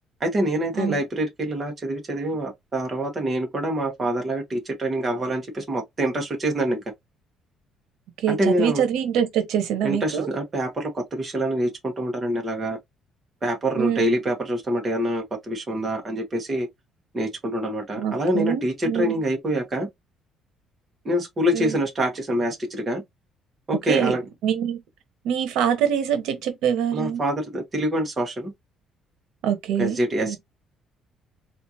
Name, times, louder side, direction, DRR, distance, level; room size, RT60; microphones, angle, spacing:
voice 1, 0.2-6.8 8.3-8.8 9.8-12.8 13.4-16.7 17.1-19.9 21.0-23.0 23.7-24.2 26.9-28.5 29.8-30.4, right 1 dB, 25° right, 1.2 m, -25 dB
voice 2, 8.2-10.3 13.8-14.2 18.0-19.1 21.5-21.8 23.9-24.2 24.4-24.8 25.2-27.2 29.4-30.4, right 9 dB, 85° right, 1.0 m, -24 dB
4.3 x 2.5 x 2.8 m
cardioid pair, 140°, 0 cm